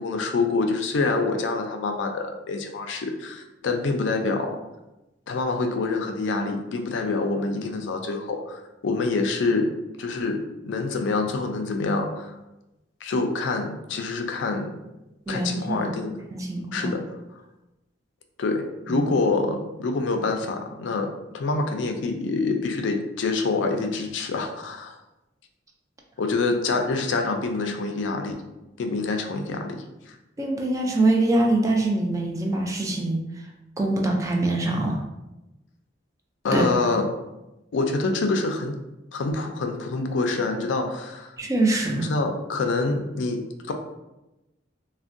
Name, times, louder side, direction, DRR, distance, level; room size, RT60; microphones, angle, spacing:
voice 1, 0.0-4.6 5.3-12.4 13.0-14.7 15.3-16.2 16.7-17.1 18.4-25.0 26.2-28.4 28.8-30.2 36.4-37.1 37.7-38.8 39.1-41.4 41.9-43.7, left 3 dB, 70° left, 5 dB, 0.4 m, -26 dB
voice 2, 15.3-15.9 16.3-16.9 18.9-19.1 30.4-33.2 33.8-35.0 36.5-36.7 41.4-42.1, right 2 dB, 15° right, 1 dB, 0.3 m, -24 dB
3.4 x 2.1 x 2.5 m, 0.98 s
head